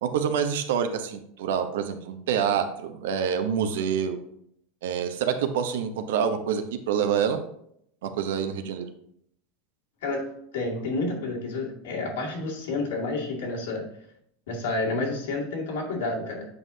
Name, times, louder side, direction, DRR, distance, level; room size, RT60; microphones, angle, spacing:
voice 1, 0.0-4.2 4.8-7.4 8.0-8.9, right 7 dB, 80° right, 8 dB, 0.8 m, -27 dB
voice 2, 10.0-13.8 14.5-16.5, left 3 dB, 90° left, -2 dB, 2.2 m, -30 dB
7.9 x 5.5 x 2.8 m, 0.71 s
supercardioid pair, 170°, 0 cm